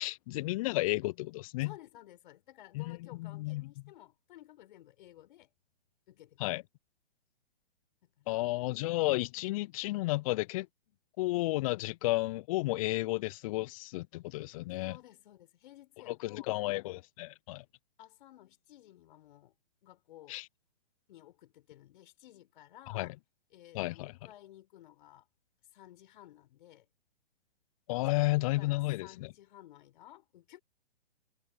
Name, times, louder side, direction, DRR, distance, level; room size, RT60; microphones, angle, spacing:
voice 1, 0.0-1.7 2.7-3.6 6.4-6.6 8.3-10.7 11.2-15.0 16.1-17.6 20.3-20.5 22.9-23.1 23.7-24.1 27.9-29.3, left 20 dB, 30° left, 0.8 m, -32 dB
voice 2, 1.6-5.5 6.1-6.4 8.2-8.5 10.9-11.0 14.8-16.5 18.0-19.5 19.8-20.4 21.1-23.1 23.5-25.3 25.7-26.9 28.2-30.6, left 13 dB, 50° left, 6.2 m, -55 dB
figure-of-eight pair, 120°, 33 cm